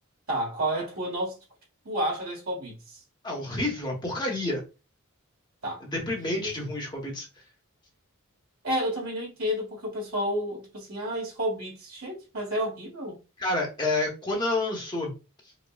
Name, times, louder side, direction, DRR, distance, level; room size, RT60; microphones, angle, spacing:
voice 1, 0.3-1.4 1.8-3.0 5.6-5.8 6.2-6.7 8.6-13.2, equal, 75° right, 1.6 m, -31 dB
voice 2, 3.2-4.6 5.8-7.3 13.4-15.1, left 2 dB, 20° left, 1.0 m, -29 dB
5.0 x 2.2 x 2.3 m
head